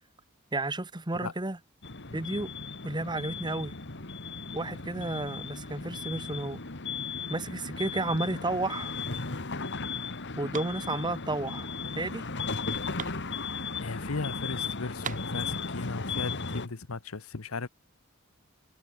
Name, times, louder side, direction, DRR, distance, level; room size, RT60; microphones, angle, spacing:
voice 1, 0.5-1.6 2.1-2.5 2.8-3.7 4.5-6.6 7.3-8.9 10.3-12.2, right 2 dB, 20° right, 1.4 m, -32 dB
sound 1, 1.8-16.7, left 4 dB, 55° left, 2.2 m, -36 dB
sound 2, 10.0-14.1 14.4-14.5 14.7-16.0, right 8 dB, 35° right, 0.9 m, -44 dB
voice 2, 13.8-17.7, left 3 dB, 80° left, 1.1 m, -36 dB
head